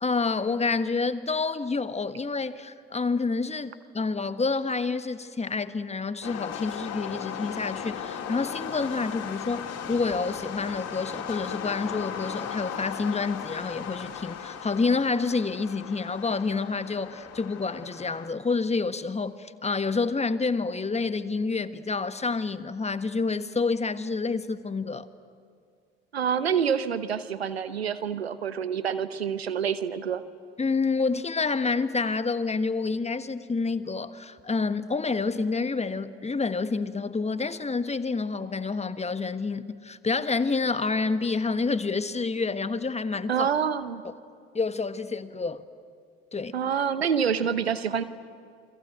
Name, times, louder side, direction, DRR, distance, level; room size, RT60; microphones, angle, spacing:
voice 1, 0.0-25.1 30.6-43.5 44.5-45.6 46.3-46.6, left 4 dB, 20° left, 1.4 m, -28 dB
sound 1, 6.2-18.3, left 8 dB, 55° left, 3.4 m, -37 dB
voice 2, 26.1-30.2 43.3-44.0 46.5-48.0, right 7 dB, 90° right, 0.9 m, -27 dB
28.0 x 23.0 x 9.3 m
figure-of-eight pair, 55°, 30 cm